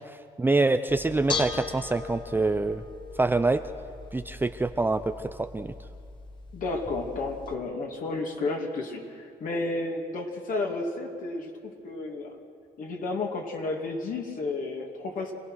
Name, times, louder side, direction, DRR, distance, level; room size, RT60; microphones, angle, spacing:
voice 1, 0.4-2.8 3.2-3.6 4.1-5.0 5.4-5.7, right 3 dB, 10° right, 8 dB, 0.6 m, -25 dB
Bell / Dishes pots and pans, 0.9-7.5, left 4 dB, 30° left, 1.9 m, -39 dB
voice 2, 6.5-12.4 12.8-15.3, left 3 dB, 55° left, 1 dB, 2.5 m, -32 dB
26.5 x 17.5 x 6.3 m, 2.2 s
cardioid pair, 110°, 17 cm